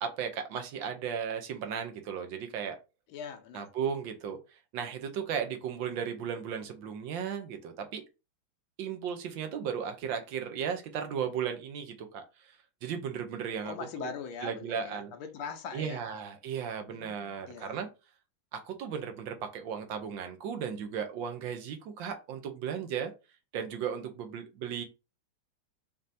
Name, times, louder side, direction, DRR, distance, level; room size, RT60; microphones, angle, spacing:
voice 1, 0.0-2.8 3.5-4.4 4.7-8.0 8.8-14.1 14.4-15.1 15.7-17.9 18.5-23.1 23.5-24.8, right 7 dB, 70° right, 1.3 m, -35 dB
voice 2, 3.1-3.6 13.6-16.0 16.9-17.8, left 6 dB, 85° left, 1.6 m, -41 dB
5.3 x 2.7 x 2.6 m
omnidirectional pair, 2.3 m